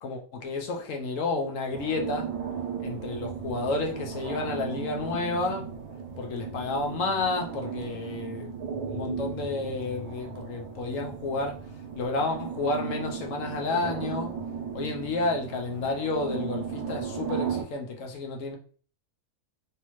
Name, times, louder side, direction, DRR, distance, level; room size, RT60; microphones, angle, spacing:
voice 1, 0.0-2.3 2.8-5.7 6.2-8.6 8.9-11.6 12.0-14.3 14.7-18.6, left 3 dB, 65° left, 1 dB, 0.9 m, -31 dB
sound 1, 1.7-17.6, right 6 dB, 85° right, 1.2 m, -36 dB
3.4 x 2.6 x 3.0 m, 0.43 s
omnidirectional pair, 1.6 m